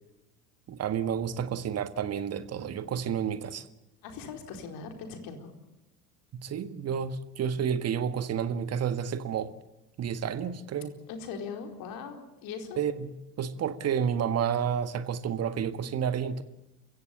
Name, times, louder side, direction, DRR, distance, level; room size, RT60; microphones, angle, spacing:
voice 1, 0.7-3.6 6.4-9.5 10.0-11.0 12.8-13.1 13.4-16.4, right 8 dB, 30° right, 1.7 m, -30 dB
voice 2, 4.0-5.5 11.1-12.8, left 5 dB, 45° left, 4.5 m, -40 dB
29.5 x 16.0 x 8.4 m
figure-of-eight pair, 70°, 46 cm